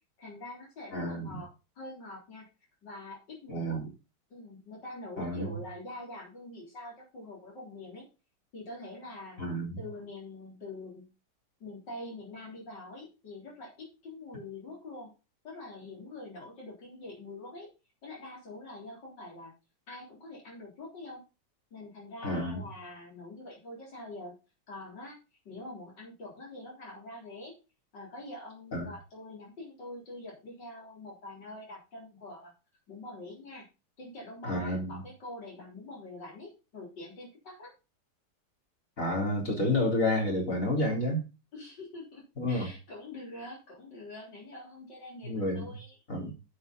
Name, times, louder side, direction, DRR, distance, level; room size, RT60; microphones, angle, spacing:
voice 1, 0.2-1.5 1.8-2.5 2.8-3.8 4.3-8.1 8.5-9.5 9.8-11.1 11.6-15.1 15.4-17.7 18.0-19.5 19.9-21.2 21.7-24.3 24.7-25.2 25.4-27.5 27.9-32.5 32.9-33.7 34.0-37.7 41.5-46.3, left 2 dB, 75° left, 4.4 m, -45 dB
voice 2, 0.9-1.4 3.5-3.9 5.2-5.5 9.4-9.8 22.2-22.6 28.7-28.9 34.4-35.0 39.0-41.2 42.4-42.7 45.2-45.8 46.1-46.3, left 1 dB, 45° left, 4.3 m, -30 dB
8.8 x 6.7 x 5.3 m
omnidirectional pair, 1.9 m